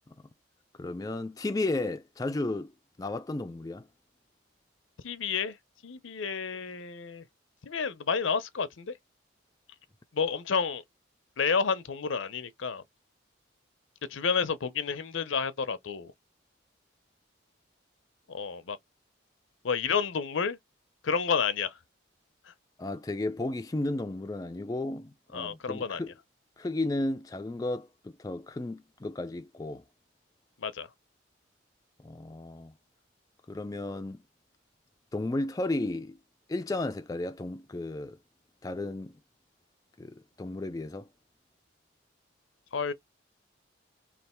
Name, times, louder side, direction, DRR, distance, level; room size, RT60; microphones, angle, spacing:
voice 1, 0.8-2.7 3.0-3.9 22.8-26.1 26.6-27.9 28.2-29.8 32.0-32.7 33.5-34.2 35.1-36.2 36.5-38.2 38.6-39.2 40.0-41.1, left 2 dB, 20° left, 0.3 m, -33 dB
voice 2, 5.0-5.6 5.8-7.2 7.6-9.0 10.1-10.8 11.4-12.8 14.1-16.1 18.3-18.8 19.6-20.6 21.0-21.8 22.5-22.6 25.3-26.0 30.6-30.9 42.7-42.9, left 6 dB, 75° left, 0.6 m, -30 dB
3.2 x 2.5 x 4.3 m
head